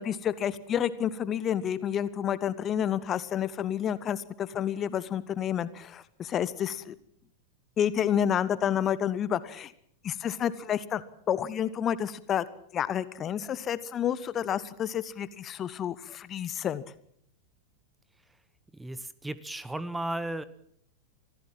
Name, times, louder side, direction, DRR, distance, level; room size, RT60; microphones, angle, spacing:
voice 1, 0.0-6.9 7.8-9.7 10.0-12.4 12.7-16.8, left 9 dB, 30° left, 16 dB, 1.1 m, -29 dB
voice 2, 18.7-20.4, right 1 dB, 5° right, 16 dB, 1.1 m, -35 dB
25.5 x 16.0 x 7.5 m, 0.67 s
figure-of-eight pair, 90°, 0 cm